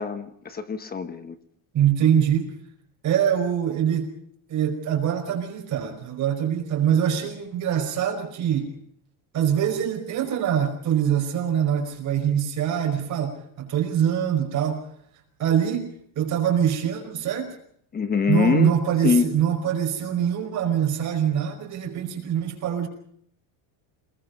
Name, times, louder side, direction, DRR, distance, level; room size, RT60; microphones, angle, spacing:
voice 1, 0.0-1.4 17.9-18.7 19.0-19.3, left 5 dB, 20° left, 10 dB, 1.2 m, -23 dB
voice 2, 1.7-2.5 3.0-4.1 4.5-8.7 9.3-14.8 15.4-15.9 16.2-17.6 18.3-22.9, right 9 dB, 35° right, 3 dB, 5.2 m, -24 dB
28.0 x 22.0 x 5.4 m, 0.68 s
cardioid pair, 170°, 48 cm